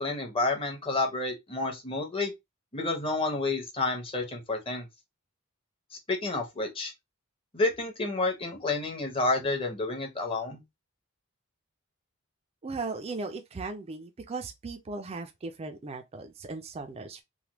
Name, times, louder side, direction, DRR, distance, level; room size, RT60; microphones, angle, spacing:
voice 1, 0.0-2.3 2.7-4.9 6.1-6.9 7.5-10.6, left 2 dB, 25° left, 0.7 m, -30 dB
voice 2, 12.6-17.2, right 3 dB, 30° right, 0.4 m, -37 dB
3.2 x 2.1 x 2.9 m
head